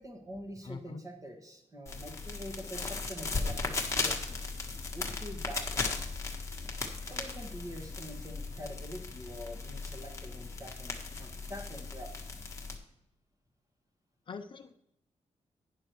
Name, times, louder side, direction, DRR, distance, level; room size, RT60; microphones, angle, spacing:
voice 1, 0.0-4.4 4.9-6.0 7.1-12.5, equal, 25° right, 2 dB, 1.7 m, -45 dB
voice 2, 0.6-1.0 14.3-14.8, left 5 dB, 45° left, 7 dB, 0.5 m, -43 dB
sound 1, 1.9-12.8, left 3 dB, 25° left, 1.4 m, -37 dB
11.5 x 9.8 x 3.1 m, 0.82 s
wide cardioid pair, 155°, 12 cm